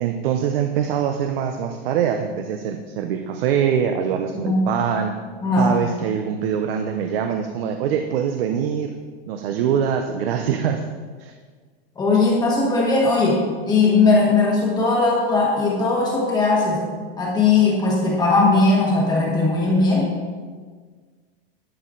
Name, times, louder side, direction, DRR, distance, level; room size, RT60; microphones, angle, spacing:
voice 1, 0.0-5.1 5.5-8.9 9.3-10.8 11.2-11.3, right 8 dB, 70° right, 6 dB, 0.7 m, -23 dB
voice 2, 5.4-5.7 12.0-16.8 17.2-20.1, left 3 dB, 15° left, -4 dB, 1.3 m, -18 dB
11.0 x 6.4 x 3.8 m, 1.5 s
supercardioid pair, 170°, 31 cm